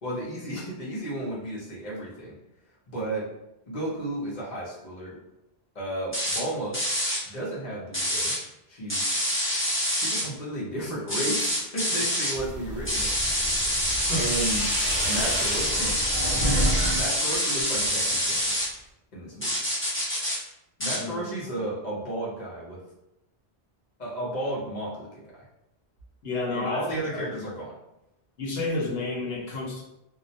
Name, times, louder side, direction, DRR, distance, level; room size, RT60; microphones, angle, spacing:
voice 1, 0.0-2.3 2.9-3.3 3.7-5.2 5.7-6.8 7.3-8.3 8.7-9.2 9.9-13.2 14.1-14.7 15.1-16.0 16.9-18.5 19.1-19.6 20.8-22.8 24.0-25.4 26.5-27.8, right 1 dB, 50° left, -6 dB, 0.8 m, -33 dB
sound 1, 6.1-6.4 6.7-7.2 7.9-8.4 8.9-10.2 11.1-12.4 12.9-18.7 19.4-20.4 20.8-21.0, equal, 15° left, 0.7 m, -26 dB
sound 2, 12.3-17.0 17.3-18.0, right 1 dB, 55° right, 0.8 m, -30 dB
voice 2, 14.0-14.5 21.0-21.2 26.2-27.2 28.4-29.8, left 2 dB, 75° left, -3 dB, 1.0 m, -31 dB
2.3 x 2.0 x 2.7 m, 0.88 s
omnidirectional pair, 1.0 m